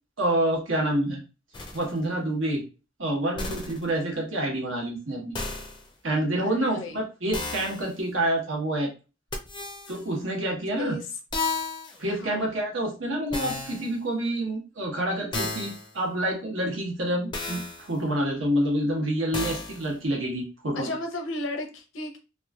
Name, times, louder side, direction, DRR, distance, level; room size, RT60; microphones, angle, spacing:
voice 1, 0.2-1.2 1.7-2.6 3.0-5.3 6.0-8.9 9.9-11.0 12.0-20.9, right 1 dB, 85° right, 1.1 m, -27 dB
sound 1, 1.5-1.9 3.4-3.9 5.3-5.9 7.3-7.9 9.3-10.0 11.3-12.0 13.3-14.0 15.3-15.9 17.3-17.9 19.3-19.9, left 3 dB, 25° left, 0.4 m, -33 dB
voice 2, 6.4-7.0 10.8-11.1 12.1-12.5 20.7-22.2, left 2 dB, 85° left, 0.7 m, -34 dB
3.0 x 2.5 x 2.3 m
head